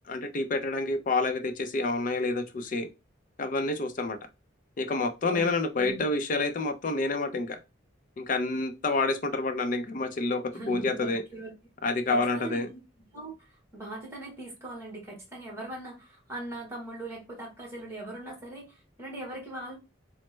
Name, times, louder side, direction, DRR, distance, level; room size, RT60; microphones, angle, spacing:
voice 1, 0.1-2.9 3.4-4.2 4.8-7.6 8.2-11.2 11.8-12.7, left 3 dB, 45° left, 8 dB, 0.4 m, -28 dB
voice 2, 10.5-11.5 12.1-12.8 13.1-19.7, right 1 dB, 15° right, 0 dB, 1.1 m, -40 dB
3.1 x 2.0 x 3.2 m, 0.25 s
head